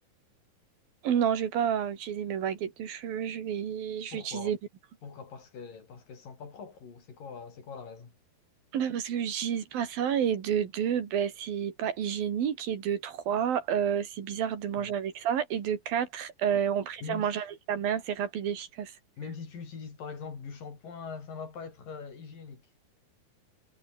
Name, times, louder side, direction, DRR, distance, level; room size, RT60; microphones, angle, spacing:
voice 1, 1.0-4.6 8.7-18.9, right 8 dB, 80° right, 4.5 m, -30 dB
voice 2, 4.1-4.5 5.0-8.1 14.8-14.9 16.5-16.6 17.0-17.3 19.2-22.7, left 5 dB, 70° left, 6.5 m, -42 dB
omnidirectional pair, 4.1 m